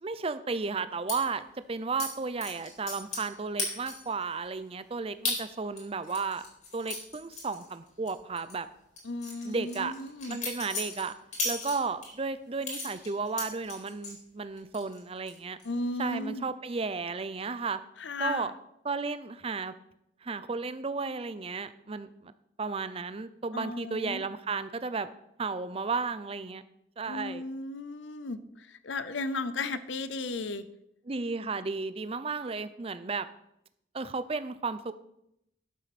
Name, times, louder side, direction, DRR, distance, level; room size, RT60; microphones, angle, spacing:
voice 1, 0.0-6.5 6.7-8.7 9.4-9.9 10.3-11.1 11.4-15.6 16.0-17.8 18.2-18.5 18.8-19.7 20.2-22.3 22.6-25.1 25.4-26.6 27.0-27.4 31.1-33.3 33.9-34.9, right 4 dB, 30° right, 13 dB, 0.5 m, -33 dB
sound 1, 1.1-1.2 2.0-2.1 2.4-3.3 3.6-4.1 4.5-4.6 5.2-5.4 5.8-8.1 8.4-8.5 9.0-12.1 12.6-14.2 14.6-15.0 15.3-15.6, left 3 dB, 40° left, 3.6 m, -35 dB
voice 2, 9.0-10.4 15.6-16.4 18.0-18.5 23.5-24.2 27.0-30.6, left 2 dB, 70° left, 13 dB, 0.7 m, -35 dB
12.0 x 7.7 x 4.2 m, 0.78 s
head